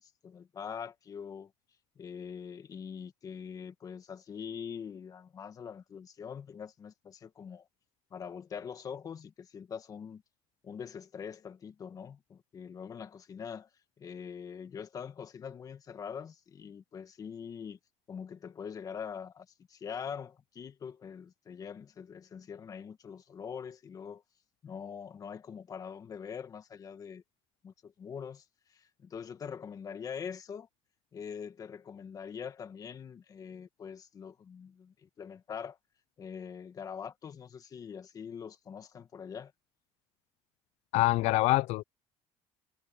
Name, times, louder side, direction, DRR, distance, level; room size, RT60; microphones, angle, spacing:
voice 1, 0.0-1.5 1.9-7.7 8.1-10.2 10.6-13.7 14.0-17.8 18.1-24.2 24.6-27.2 27.6-30.7 31.1-35.8 36.2-39.5, left 7 dB, 30° left, 1.7 m, -43 dB
voice 2, 40.9-41.8, left 18 dB, 65° left, 0.4 m, -25 dB
cardioid pair, 165°, 12 cm